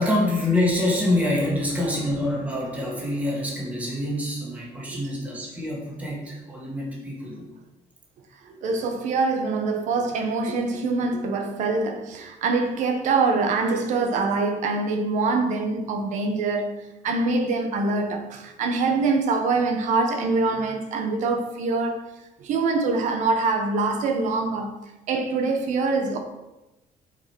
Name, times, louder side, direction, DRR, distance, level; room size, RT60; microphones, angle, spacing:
voice 1, 0.0-7.5, left 1 dB, 10° right, 1.8 m, -26 dB
voice 2, 8.4-16.8 17.0-22.0 22.4-24.8 25.1-26.2, right 3 dB, 60° right, 1.1 m, -24 dB
8.3 x 5.0 x 4.7 m
cardioid pair, 175°, 14 cm